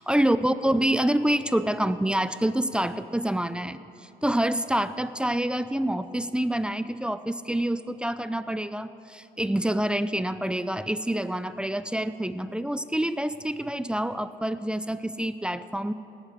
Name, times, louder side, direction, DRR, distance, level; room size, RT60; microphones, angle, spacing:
voice 1, 0.0-3.8 4.2-15.9, right 1 dB, 5° right, 13 dB, 0.5 m, -27 dB
18.5 x 8.1 x 6.7 m, 2.8 s
supercardioid pair, 75°, 18 cm